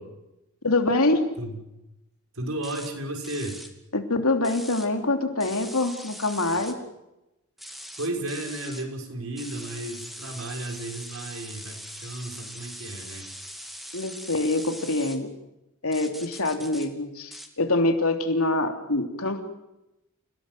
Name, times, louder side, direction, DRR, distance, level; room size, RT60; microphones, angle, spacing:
voice 1, 0.6-1.2 3.9-6.8 13.9-15.3 15.8-19.5, left 2 dB, 90° left, 5 dB, 3.2 m, -25 dB
voice 2, 2.3-3.6 8.0-13.3, right 1 dB, 70° right, 3 dB, 5.9 m, -34 dB
sound 1, 2.6-2.9 3.2-3.7 4.4-4.9 5.4-6.7 7.6-8.9 9.4-15.2 15.9-16.9 17.3-17.5, equal, ahead, 2.6 m, -41 dB
29.5 x 18.0 x 7.9 m, 0.92 s
head